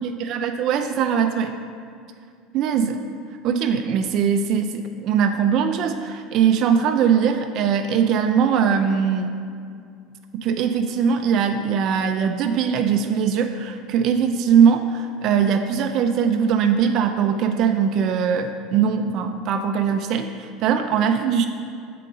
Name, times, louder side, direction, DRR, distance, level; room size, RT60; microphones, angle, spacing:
voice 1, 0.0-1.5 2.5-3.0 3.4-9.4 10.3-21.5, right 7 dB, 55° right, 6 dB, 0.3 m, -21 dB
7.4 x 3.7 x 3.8 m, 2.3 s
supercardioid pair, 115°, 0 cm